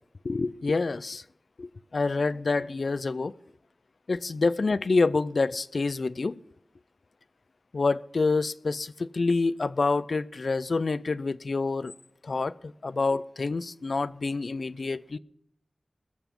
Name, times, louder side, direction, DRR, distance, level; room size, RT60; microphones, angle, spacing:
voice 1, 0.2-1.2 1.6-3.3 4.1-6.4 7.7-11.9 12.2-15.2, left 3 dB, 70° left, 0.4 m, -27 dB
21.0 x 7.0 x 5.3 m
wide cardioid pair, 85°, 0 cm